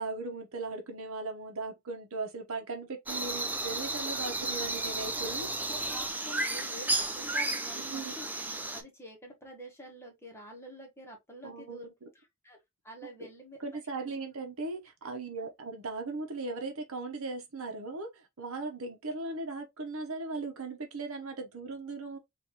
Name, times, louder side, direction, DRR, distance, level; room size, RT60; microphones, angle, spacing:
voice 1, 0.0-5.5 7.8-8.1 11.4-12.1 13.0-13.1 13.6-22.2, right 3 dB, 70° right, 0.9 m, -38 dB
morning birds, 3.1-8.8, right 2 dB, 10° right, 0.4 m, -33 dB
voice 2, 5.7-8.3 8.7-11.9 12.1-12.6 12.8-13.6 14.0-14.2 15.4-15.5, equal, 10° left, 1.2 m, -48 dB
3.9 x 2.6 x 2.9 m
head